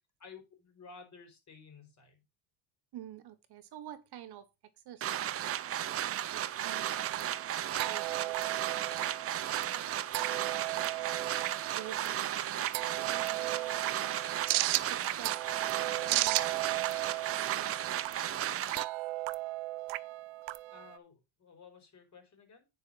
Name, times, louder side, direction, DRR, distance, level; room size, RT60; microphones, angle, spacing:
voice 1, 0.2-2.2 15.9-16.5 20.7-22.7, left 5 dB, 35° left, 4.7 m, -54 dB
voice 2, 2.9-4.5 4.8-8.9 9.5-10.0 11.8-14.3 14.9-15.4 15.8-18.1, right 11 dB, 50° right, 1.1 m, -50 dB
sound 1, 5.0-18.9, right 11 dB, 30° right, 0.4 m, -35 dB
sound 2, 6.7-21.0, right 18 dB, 70° right, 0.7 m, -36 dB
9.7 x 5.1 x 5.3 m
cardioid pair, 135°, 49 cm